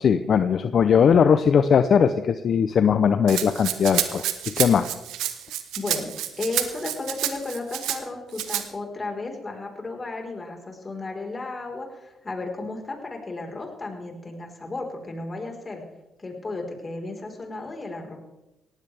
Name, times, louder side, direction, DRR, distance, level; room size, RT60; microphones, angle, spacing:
voice 1, 0.0-4.2 4.6-4.9, left 7 dB, 60° left, 10 dB, 0.7 m, -19 dB
Rattle (instrument), 3.3-8.0 8.3-8.6, right 12 dB, 85° right, 1.1 m, -28 dB
voice 2, 5.8-6.1 6.4-15.8 16.2-18.2, left 3 dB, 30° left, 2 dB, 4.6 m, -34 dB
18.5 x 16.0 x 3.5 m, 0.95 s
supercardioid pair, 60°, 0 cm